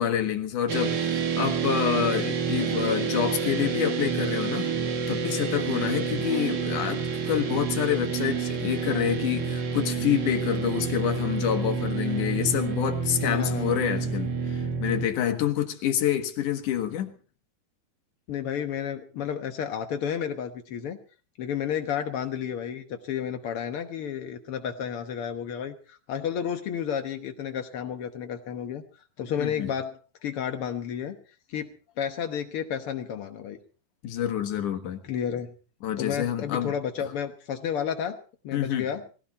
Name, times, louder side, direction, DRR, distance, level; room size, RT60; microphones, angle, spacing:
voice 1, 0.0-4.7 5.1-17.1 29.4-29.7 34.0-35.0 35.8-36.7 38.5-38.8, left 10 dB, 65° left, 7 dB, 2.9 m, -27 dB
sound 1, 0.7-15.1, right 5 dB, 80° right, 0.9 m, -28 dB
voice 2, 6.2-6.5 13.2-13.9 18.3-21.0 21.4-28.8 29.2-29.9 30.2-31.2 31.5-33.6 35.0-35.5 36.0-38.2 38.4-39.0, left 8 dB, 85° left, 6 dB, 1.2 m, -31 dB
19.5 x 16.0 x 4.2 m, 0.38 s
omnidirectional pair, 4.3 m